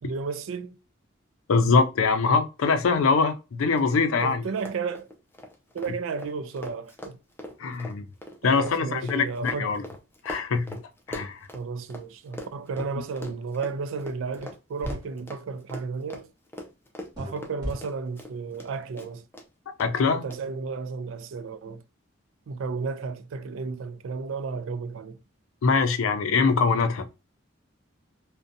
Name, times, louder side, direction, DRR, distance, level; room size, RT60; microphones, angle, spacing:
voice 1, 0.0-0.8 4.2-5.1 5.7-7.2 8.4-9.8 11.5-16.3 17.2-19.2 20.1-21.8 22.5-25.2, right 4 dB, 80° right, 0.3 m, -33 dB
voice 2, 1.5-4.4 7.6-8.0 8.4-9.8 10.2-10.8 11.1-11.4 19.8-20.2 25.6-27.1, left 4 dB, 85° left, 0.4 m, -23 dB
Run, 3.7-3.8 4.1-4.2 4.5-12.0 12.3-18.7 19.0-19.5 19.8-19.9 20.3-20.4, left 1 dB, 10° left, 0.3 m, -41 dB
sound 1, 14.4-14.5 14.8-15.0 17.1-17.3 17.6-17.8, equal, 20° right, 0.9 m, -33 dB
2.6 x 2.1 x 2.5 m
head